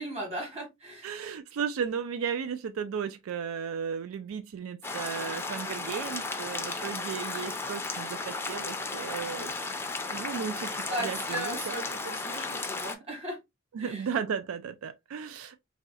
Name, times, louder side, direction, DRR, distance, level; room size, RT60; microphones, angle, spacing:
voice 1, 0.0-1.1 10.9-13.4 13.8-14.0, right 1 dB, 30° right, 1.4 m, -37 dB
voice 2, 1.0-9.5 10.1-11.8 13.7-15.6, right 7 dB, 85° right, 0.3 m, -35 dB
sound 1, 4.8-12.9, left 3 dB, 10° left, 0.4 m, -35 dB
3.1 x 2.8 x 2.3 m
head